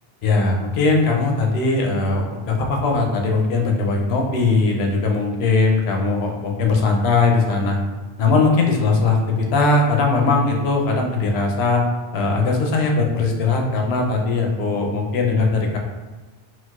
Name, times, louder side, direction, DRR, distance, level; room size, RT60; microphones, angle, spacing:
voice 1, 0.2-7.8 8.2-11.8 12.1-15.8, left 3 dB, 80° left, 1 dB, 0.8 m, -19 dB
3.9 x 2.3 x 2.3 m, 1.3 s
omnidirectional pair, 1.0 m